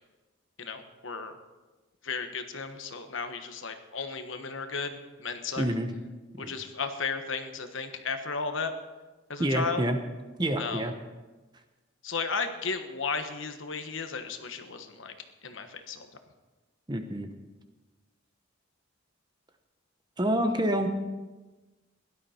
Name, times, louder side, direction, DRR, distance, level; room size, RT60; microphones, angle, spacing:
voice 1, 0.6-1.3 2.0-4.9 5.2-5.6 6.4-8.7 9.3-9.8 10.6-10.8 12.0-15.1 15.4-16.1, left 4 dB, 70° left, 7 dB, 1.2 m, -34 dB
voice 2, 5.6-5.9 6.3-6.5 9.4-10.0 10.4-10.9 16.9-17.3 20.2-20.9, right 1 dB, 20° right, 7 dB, 0.9 m, -27 dB
16.5 x 12.0 x 4.4 m, 1.2 s
head